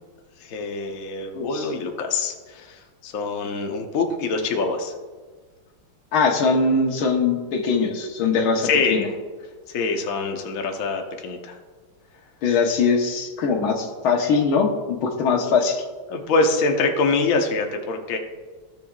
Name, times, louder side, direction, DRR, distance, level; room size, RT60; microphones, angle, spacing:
voice 1, 0.4-4.9 8.6-9.1 9.7-11.6 16.1-18.2, left 3 dB, 50° left, 3 dB, 1.2 m, -24 dB
voice 2, 1.3-1.7 6.1-9.1 12.4-15.8, left 4 dB, 75° left, 2 dB, 2.0 m, -21 dB
16.0 x 7.1 x 2.4 m, 1.4 s
omnidirectional pair, 2.3 m